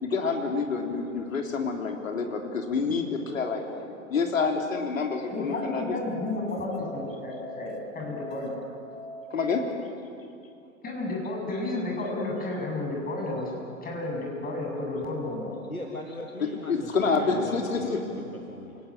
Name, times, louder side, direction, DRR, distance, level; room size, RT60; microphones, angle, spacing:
voice 1, 0.0-5.9 9.3-9.7 16.7-18.0, left 4 dB, 70° left, 3 dB, 3.5 m, -28 dB
Musical instrument, 4.9-9.7, left 1 dB, 45° left, 2.1 m, -43 dB
voice 2, 5.3-8.5 10.8-13.5 13.8-15.5, left 2 dB, 20° left, -1 dB, 7.9 m, -32 dB
voice 3, 15.7-18.8, left 2 dB, 90° left, 2 dB, 2.0 m, -40 dB
28.0 x 19.0 x 8.8 m, 2.6 s
figure-of-eight pair, 95°, 41 cm